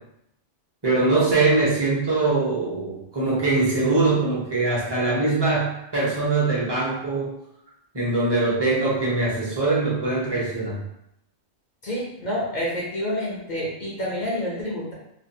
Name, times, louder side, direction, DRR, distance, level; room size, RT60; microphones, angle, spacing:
voice 1, 0.8-7.3 7.9-10.8, right 3 dB, 25° right, -6 dB, 0.8 m, -22 dB
voice 2, 11.8-14.9, equal, 50° left, -5 dB, 0.6 m, -28 dB
2.5 x 2.4 x 2.7 m, 0.80 s
omnidirectional pair, 1.3 m